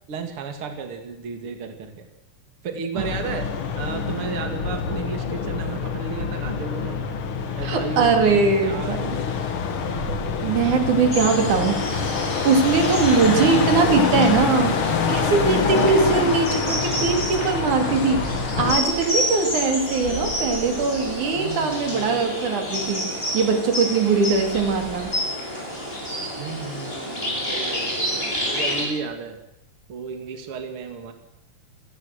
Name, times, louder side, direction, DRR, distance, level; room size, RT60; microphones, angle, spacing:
voice 1, 0.1-2.1 2.6-3.5 3.8-7.0 7.5-9.0 11.4-11.9 21.4-22.3 26.4-29.4 29.9-31.1, right 5 dB, 45° right, 6 dB, 2.9 m, -34 dB
sound 1, 3.0-18.8, left 6 dB, 50° left, 2.1 m, -26 dB
voice 2, 7.6-9.2 10.4-11.8 12.4-14.8 15.1-18.3 18.6-25.1, right 4 dB, 75° right, 5 dB, 3.9 m, -21 dB
sound 2, 9.8-14.9 15.8-15.9 17.7-25.1, right 3 dB, 30° right, 5.9 m, -42 dB
sound 3, 11.1-28.8, equal, 15° left, 7.4 m, -29 dB
27.0 x 18.5 x 6.5 m, 0.81 s
omnidirectional pair, 3.5 m